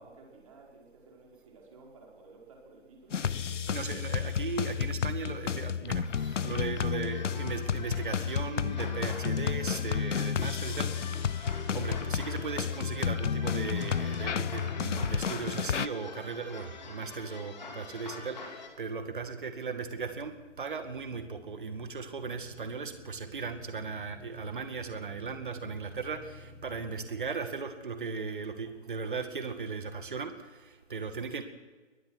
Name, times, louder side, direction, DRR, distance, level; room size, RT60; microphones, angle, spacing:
voice 1, 0.0-3.2 8.4-8.5, right 3 dB, 30° right, -1 dB, 5.1 m, -54 dB
sound 1, 3.1-15.9, left 7 dB, 75° left, 0.7 m, -31 dB
voice 2, 3.7-31.4, right 5 dB, 45° right, 8 dB, 2.2 m, -37 dB
sound 2, 6.0-18.7, left 4 dB, 35° left, 3.5 m, -46 dB
sound 3, 16.3-27.3, left 2 dB, 5° right, 1.2 m, -55 dB
22.5 x 20.5 x 6.4 m, 1.3 s
figure-of-eight pair, 170°, 37 cm